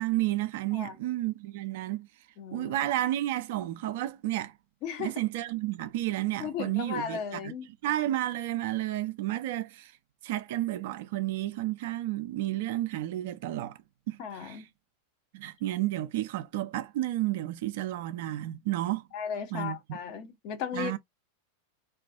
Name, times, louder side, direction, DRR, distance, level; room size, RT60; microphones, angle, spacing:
voice 1, 0.0-2.1 2.5-4.5 5.0-7.5 7.8-9.9 10.2-13.8 14.1-14.2 14.4-14.6 15.3-19.0 19.5-20.0 20.7-21.0, right 15 dB, 50° right, 0.4 m, -31 dB
voice 2, 2.4-2.8 4.8-5.1 6.4-7.7 14.2-14.7 19.1-20.9, left 7 dB, 45° left, 0.6 m, -36 dB
2.3 x 2.3 x 2.3 m
figure-of-eight pair, 90°, 0 cm